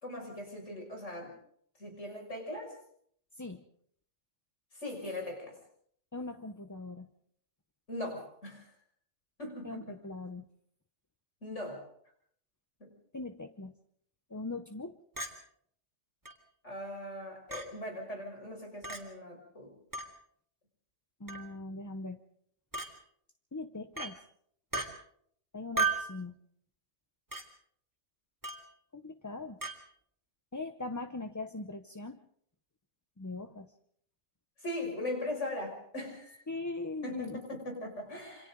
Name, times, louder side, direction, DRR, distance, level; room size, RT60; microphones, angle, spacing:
voice 1, 0.0-1.3 1.8-2.8 4.8-5.6 7.9-8.7 9.4-10.0 11.4-11.8 12.8-12.9 16.6-19.7 34.6-36.4 37.0-38.5, left 1 dB, 75° left, 1 dB, 6.7 m, -40 dB
voice 2, 6.1-7.1 9.6-10.4 13.1-13.7 14.3-15.0 21.2-22.2 23.5-24.2 25.5-26.3 28.9-29.6 30.5-32.2 33.2-33.7 36.5-37.4, left 3 dB, 20° left, 7 dB, 0.7 m, -40 dB
Chink clink, 15.2-15.3 16.3-16.4 17.5-17.7 18.8-19.0 19.9-20.1 21.3-21.5 22.7-22.9 24.0-24.1 24.7-24.9 25.8-26.1 27.3-27.5 28.4-28.7 29.6-29.8, right 4 dB, 15° right, 2.8 m, -34 dB
27.5 x 25.5 x 3.9 m, 0.64 s
omnidirectional pair, 1.2 m